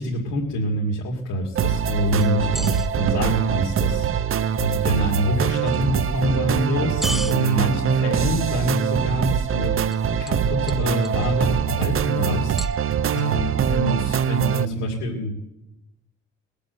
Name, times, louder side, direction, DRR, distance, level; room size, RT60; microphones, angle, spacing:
voice 1, 0.0-4.3 4.6-9.9 10.2-12.8 13.1-15.3, equal, 80° left, -2 dB, 2.6 m, -25 dB
sound 1, 1.6-14.7, right 9 dB, 45° right, 0.6 m, -23 dB
sound 2, 2.2-2.9 5.7-5.8 7.0-7.4 9.9-10.0 10.3-10.4 10.7-11.3 12.6-13.2, equal, ahead, 0.7 m, -32 dB
20.0 x 8.4 x 8.1 m, 0.92 s
cardioid pair, 90°, 30 cm